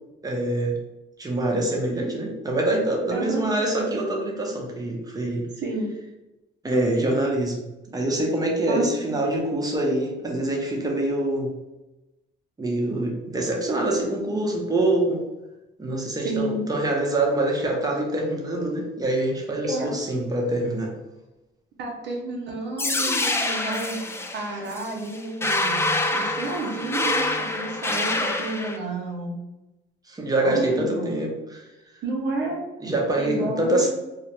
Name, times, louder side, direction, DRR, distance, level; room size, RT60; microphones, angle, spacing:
voice 1, 0.2-0.8 1.2-5.5 6.6-7.6 7.9-11.5 12.6-15.2 15.8-20.9 30.1-31.7 31.9-32.0 32.8-33.9, right 1 dB, 20° right, -1 dB, 0.7 m, -25 dB
voice 2, 3.1-3.4 5.6-5.9 8.7-9.1 16.2-16.6 19.7-19.9 21.8-24.0 24.3-25.8 26.1-29.4 30.4-31.1 32.0-32.6 33.2-33.9, right 2 dB, 65° right, 0 dB, 0.7 m, -30 dB
sound 1, 22.8-28.8, left 2 dB, 15° left, 0.3 m, -26 dB
2.4 x 2.0 x 2.9 m, 1.0 s
cardioid pair, 90°, 20 cm